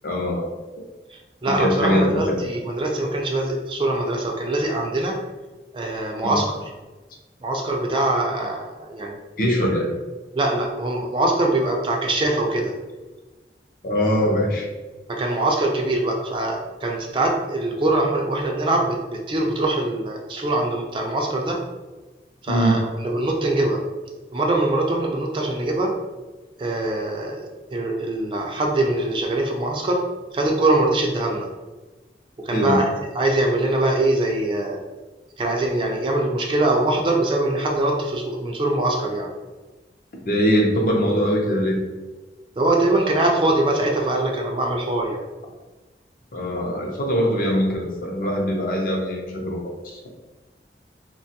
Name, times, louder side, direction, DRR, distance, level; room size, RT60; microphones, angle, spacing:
voice 1, 0.0-0.5 1.5-2.3 6.2-6.4 9.4-9.9 13.8-14.7 22.5-22.8 32.5-32.8 40.3-41.8 46.3-50.0, equal, 50° left, 0 dB, 0.5 m, -22 dB
voice 2, 1.1-5.2 5.7-6.6 7.4-9.2 10.3-12.7 15.1-21.6 22.4-23.8 24.3-25.9 26.6-30.0 30.3-31.5 32.4-32.9 33.1-34.8 35.4-39.3 42.6-45.2, right 2 dB, 30° right, 0 dB, 0.3 m, -23 dB
2.8 x 2.2 x 2.7 m, 1.2 s
head